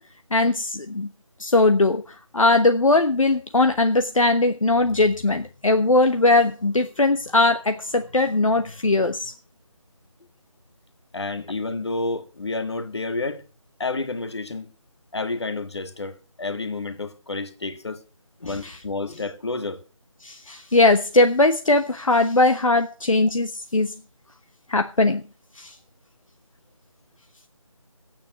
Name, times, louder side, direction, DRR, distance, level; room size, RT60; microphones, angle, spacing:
voice 1, 0.3-1.1 1.4-9.3 18.6-18.7 20.2-23.9 24.7-25.2 25.6-25.7, left 2 dB, 70° left, 1.1 m, -20 dB
voice 2, 11.1-13.4 13.8-14.7 15.1-18.0 18.4-19.8, left 3 dB, 50° left, 1.8 m, -30 dB
14.5 x 9.2 x 6.1 m
figure-of-eight pair, 165°, 18 cm